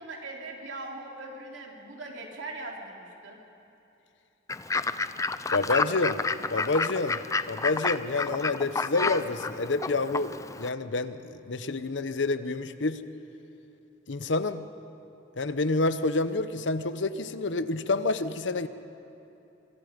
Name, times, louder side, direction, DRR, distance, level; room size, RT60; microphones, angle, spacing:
voice 1, 0.0-3.4, right 2 dB, 75° right, 0 dB, 3.2 m, -40 dB
Fowl / Bird, 4.5-10.7, left 4 dB, 15° left, 0.4 m, -30 dB
voice 2, 5.5-6.2 6.5-7.2 7.5-10.3 10.6-13.0 14.1-14.7 15.4-18.7, left 3 dB, 70° left, 12 dB, 0.9 m, -28 dB
25.5 x 24.0 x 5.2 m, 2.9 s
head